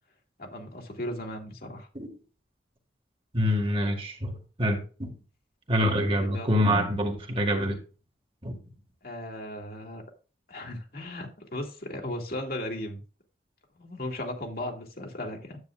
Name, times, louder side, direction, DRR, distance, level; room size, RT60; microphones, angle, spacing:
voice 1, 0.4-1.9 6.1-6.6 9.0-10.0 10.5-13.0 13.8-15.6, left 1 dB, 55° left, 2.3 m, -36 dB
voice 2, 3.3-5.1 5.7-7.8 8.4-8.6, equal, 30° right, 1.8 m, -26 dB
9.7 x 9.0 x 2.4 m
head